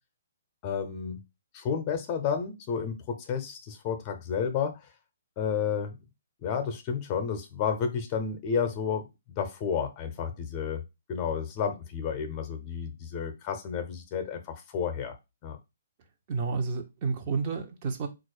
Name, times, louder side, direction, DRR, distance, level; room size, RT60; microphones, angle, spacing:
voice 1, 0.6-1.2 1.5-4.9 5.4-6.0 6.4-10.8 11.1-15.1 15.4-15.6, left 7 dB, 30° left, 0.8 m, -31 dB
voice 2, 16.3-18.1, right 4 dB, 40° right, 0.9 m, -30 dB
4.0 x 2.5 x 4.7 m
figure-of-eight pair, 130°, 0 cm